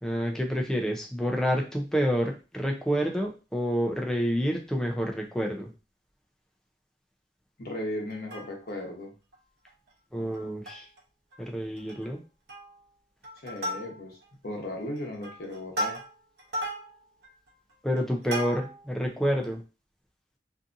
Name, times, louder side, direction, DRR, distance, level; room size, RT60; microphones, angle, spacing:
voice 1, 0.0-5.7 10.1-10.8 11.4-12.2 17.8-19.6, equal, 5° left, 1 dB, 0.4 m, -28 dB
voice 2, 7.6-9.1 13.4-14.2 14.4-16.0, left 1 dB, 55° left, 0 dB, 0.9 m, -36 dB
Plucked string instrument, 8.1-8.9 9.3-9.4 9.7-9.9 10.3-11.0 11.3-11.4 11.8-12.1 12.5-12.9 13.2-14.3 14.8-18.9 19.4-19.5, right 1 dB, 60° right, 0.8 m, -36 dB
2.7 x 2.5 x 2.5 m, 0.32 s
head